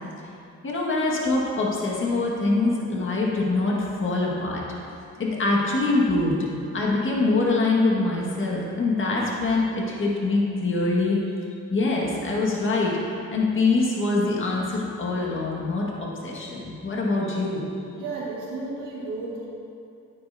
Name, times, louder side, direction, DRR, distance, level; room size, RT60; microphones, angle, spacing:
voice 1, 0.6-4.6 5.2-6.5 6.7-11.2 11.7-13.0 13.3-17.6, left 3 dB, 40° left, -3 dB, 1.8 m, -24 dB
voice 2, 18.0-19.5, right 3 dB, 85° right, -5 dB, 1.8 m, -33 dB
9.6 x 8.6 x 2.7 m, 2.6 s
cardioid pair, 90°, 30 cm